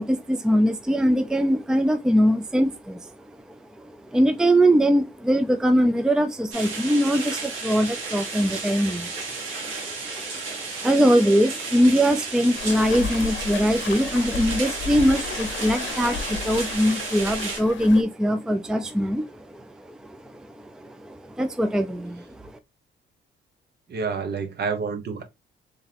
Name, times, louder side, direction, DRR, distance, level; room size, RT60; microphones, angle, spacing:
voice 1, 0.0-3.1 3.5-22.4, equal, 5° right, 0.4 m, -22 dB
sound 1, 6.5-17.6, right 4 dB, 85° right, 1.5 m, -33 dB
Waves surf, 12.6-18.0, left 6 dB, 70° left, 0.7 m, -34 dB
voice 2, 23.9-25.2, right 5 dB, 55° right, 0.9 m, -28 dB
3.5 x 3.1 x 3.3 m
cardioid pair, 90°, 20 cm